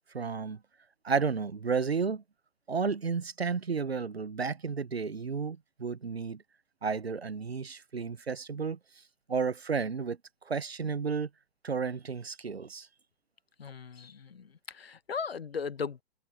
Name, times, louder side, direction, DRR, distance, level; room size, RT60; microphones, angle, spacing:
voice 1, 0.1-0.6 1.0-2.2 2.7-6.4 6.8-8.8 9.3-10.2 10.5-11.3 11.6-12.9, right 5 dB, 80° right, 1.1 m, -32 dB
voice 2, 13.6-16.0, left 5 dB, 75° left, 1.2 m, -37 dB
figure-of-eight pair, 110°, 30 cm